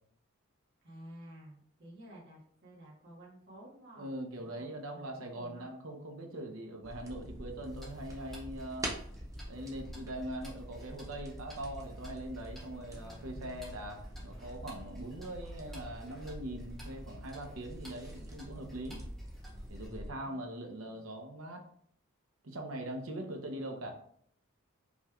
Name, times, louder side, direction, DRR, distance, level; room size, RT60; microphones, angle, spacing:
voice 1, 0.8-4.6 4.9-5.7 12.9-13.8 20.2-21.1 23.1-23.4, right 1 dB, 55° right, -5 dB, 1.4 m, -53 dB
voice 2, 4.0-8.9 9.5-19.0 19.7-21.6 22.4-23.9, right 1 dB, 80° right, 3 dB, 0.8 m, -42 dB
sound 1, 6.8-20.1, right 1 dB, 15° right, 0.6 m, -45 dB
Tick-tock, 7.6-19.9, equal, ahead, 1.5 m, -57 dB
5.2 x 3.0 x 2.4 m, 0.64 s
head